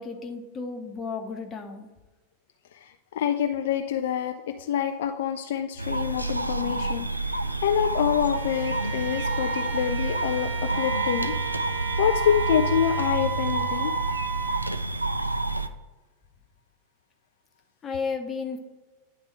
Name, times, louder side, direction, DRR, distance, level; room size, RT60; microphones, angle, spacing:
voice 1, 0.0-1.9 17.8-18.6, left 4 dB, 20° left, 5 dB, 0.9 m, -33 dB
voice 2, 2.7-11.3 11.6-11.7 12.0-13.9, left 9 dB, 55° left, 5 dB, 0.4 m, -27 dB
sound 1, 5.8-15.7, right 2 dB, 85° right, 0.4 m, -29 dB
Bowed string instrument, 8.3-13.2, right 6 dB, 65° right, 2.4 m, -35 dB
Wind instrument woodwind instrument, 10.6-14.7, right 8 dB, 35° right, 0.8 m, -33 dB
9.6 x 3.6 x 4.5 m, 1.2 s
figure-of-eight pair, 90°, 0 cm